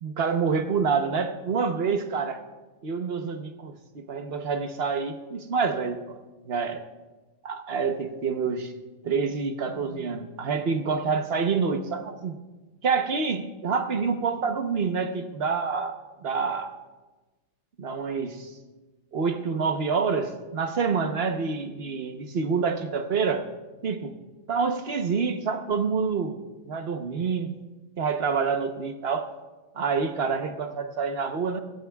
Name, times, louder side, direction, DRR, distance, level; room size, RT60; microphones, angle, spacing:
voice 1, 0.0-2.4 2.8-6.1 6.4-6.8 7.4-8.7 9.0-12.3 12.8-16.0 16.2-16.7 17.8-18.5 19.1-23.4 23.8-24.1 24.5-26.3 26.7-27.5 28.0-29.3 29.7-31.6, right 5 dB, 50° right, 6 dB, 1.1 m, -27 dB
24.5 x 15.0 x 2.3 m, 1.2 s
omnidirectional pair, 1.4 m